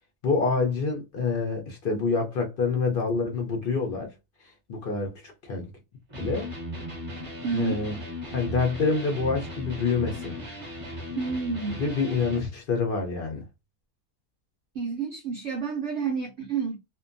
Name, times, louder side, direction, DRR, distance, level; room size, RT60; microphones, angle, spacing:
voice 1, 0.2-4.1 4.7-5.7 6.2-6.5 7.5-8.0 8.3-10.4 11.7-13.4, left 4 dB, 75° left, 0.5 m, -27 dB
Electric guitar, 6.1-12.5, equal, 35° right, 0.5 m, -37 dB
voice 2, 7.4-7.8 11.2-11.8 14.7-16.8, right 5 dB, 80° right, 0.6 m, -29 dB
2.6 x 2.2 x 2.5 m
omnidirectional pair, 1.8 m